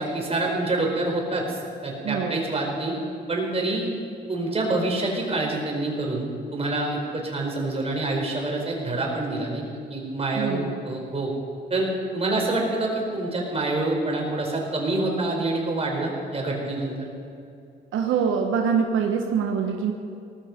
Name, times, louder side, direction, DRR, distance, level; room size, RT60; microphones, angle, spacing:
voice 1, 0.0-3.0 3.3-3.9 4.3-9.6 9.9-11.3 11.7-11.9 12.1-17.0, right 2 dB, 30° right, 0 dB, 4.7 m, -26 dB
voice 2, 2.0-2.4 10.4-10.8 17.9-19.9, right 6 dB, 85° right, 3 dB, 1.3 m, -24 dB
18.0 x 14.0 x 5.3 m, 2.5 s
cardioid pair, 90°, 20 cm